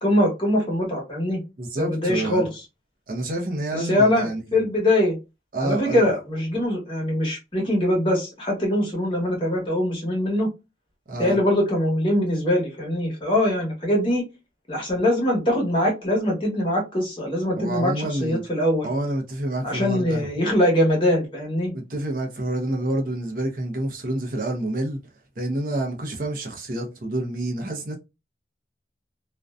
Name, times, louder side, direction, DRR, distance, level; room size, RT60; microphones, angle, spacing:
voice 1, 0.0-1.4 1.8-2.5 3.9-5.2 5.6-10.5 11.2-14.2 14.7-18.9 19.6-21.7, left 1 dB, 30° left, 1.0 m, -22 dB
voice 2, 1.6-2.5 3.1-4.6 5.5-6.1 11.1-11.4 17.6-18.4 18.8-20.3 21.7-25.0 25.4-28.0, right 1 dB, 50° right, 0.6 m, -28 dB
2.5 x 2.2 x 2.3 m
head